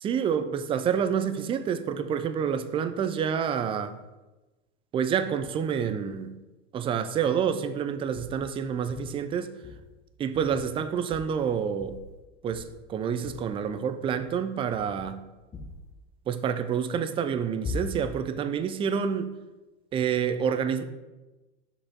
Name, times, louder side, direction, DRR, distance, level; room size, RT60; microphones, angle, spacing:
voice 1, 0.0-4.0 4.9-6.3 6.7-9.5 10.2-12.0 12.4-15.2 16.3-19.3 19.9-20.8, right 7 dB, 15° right, 0.3 m, -28 dB
sound 1, 8.2-8.5 8.9-9.2 9.6-9.9 10.3-10.8 11.1-11.4 11.8-12.2 12.5-12.9 13.2-13.5 14.0-14.4 14.7-15.2 15.5-15.9 17.6-18.2, left 3 dB, 20° left, 1.0 m, -40 dB
6.6 x 5.0 x 3.6 m
hypercardioid pair, 95°, 35 cm